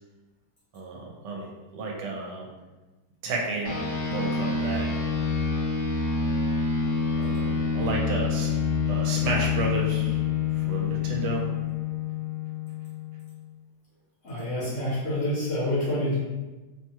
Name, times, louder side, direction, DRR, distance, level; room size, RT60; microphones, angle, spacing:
voice 1, 0.7-1.5 1.7-2.5 3.2-3.8 4.1-4.9 7.2-8.5 8.9-10.2 10.5-11.4, right 3 dB, 75° right, -1 dB, 1.2 m, -31 dB
sound 1, 3.7-13.4, left 5 dB, 80° left, 1.2 m, -27 dB
voice 2, 14.2-16.2, left 1 dB, 55° left, -8 dB, 1.0 m, -27 dB
2.9 x 2.3 x 2.8 m, 1.2 s
omnidirectional pair, 1.9 m